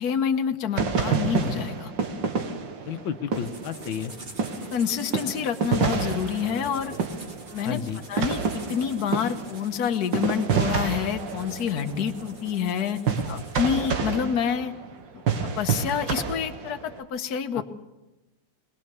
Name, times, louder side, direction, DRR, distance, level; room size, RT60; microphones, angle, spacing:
voice 1, 0.0-1.9 4.7-6.9 7.5-7.8 8.1-13.0 13.5-14.7 15.4-17.6, left 7 dB, 60° left, 6 dB, 1.5 m, -27 dB
sound 1, 0.8-4.1 4.4-17.0, right 6 dB, 75° right, 2.1 m, -29 dB
voice 2, 2.8-4.1 7.6-8.0 13.2-13.4 17.5-17.6, left 8 dB, 90° left, 8 dB, 1.7 m, -32 dB
sound 2, 3.3-14.0, right 2 dB, 30° right, 1.9 m, -46 dB
21.5 x 21.0 x 6.8 m, 1.0 s
omnidirectional pair, 2.0 m